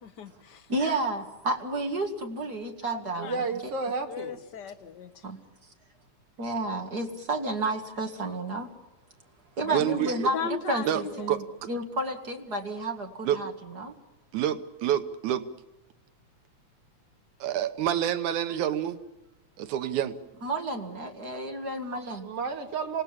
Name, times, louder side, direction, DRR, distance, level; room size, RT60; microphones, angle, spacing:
voice 1, 0.0-0.6 2.8-3.3 4.1-5.1 9.6-9.7 10.3-11.3, left 7 dB, 70° left, 8 dB, 1.0 m, -37 dB
voice 2, 0.7-3.7 5.2-5.4 6.4-8.7 9.6-13.9 20.4-22.3, right 2 dB, 35° right, 4 dB, 2.3 m, -31 dB
voice 3, 3.2-4.4 22.2-23.0, right 4 dB, 55° right, 3 dB, 3.0 m, -31 dB
voice 4, 9.7-10.3 10.8-11.0 11.3-11.4 13.3-13.4 14.3-15.5 17.4-19.0 19.6-20.2, right 10 dB, 90° right, 10 dB, 2.5 m, -27 dB
26.5 x 19.0 x 7.4 m, 1.0 s
omnidirectional pair, 3.3 m